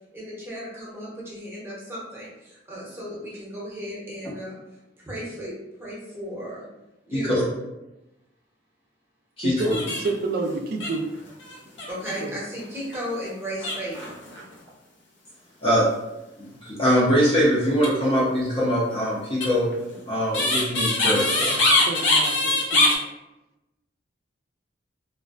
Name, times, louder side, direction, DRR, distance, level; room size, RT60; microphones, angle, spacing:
voice 1, 0.1-4.6 5.0-5.5 5.8-6.6 7.1-7.4 11.9-14.2, equal, 15° right, -6 dB, 0.7 m, -35 dB
voice 2, 7.1-7.4 9.4-9.8 15.6-15.8 16.4-19.7 20.1-21.6, equal, 30° left, -7 dB, 0.5 m, -22 dB
voice 3, 9.4-11.1 12.2-12.3 21.2-23.0, right 3 dB, 55° right, 3 dB, 0.3 m, -30 dB
sound 1, 9.6-10.2 10.5-10.6 10.8-12.2 12.7-13.0 13.6-14.4 17.7-17.9 19.4-22.9, left 2 dB, 80° left, 0.5 m, -23 dB
2.4 x 2.1 x 2.4 m, 0.96 s
head